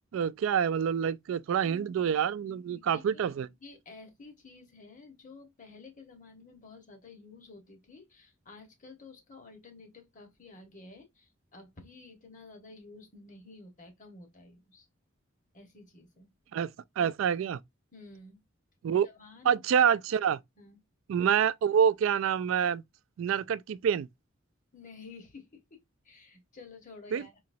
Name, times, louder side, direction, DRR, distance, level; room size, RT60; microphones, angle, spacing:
voice 1, 0.1-3.5 16.5-16.7 17.0-17.6 18.8-19.1 19.5-20.4 21.1-22.8 23.2-24.1 27.1-27.2, right 8 dB, 75° right, 0.3 m, -27 dB
voice 2, 2.8-3.2 3.6-14.9 15.5-16.3 17.9-18.4 19.0-19.8 20.6-20.8 24.7-27.4, left 3 dB, 40° left, 1.2 m, -51 dB
3.9 x 2.9 x 2.6 m
head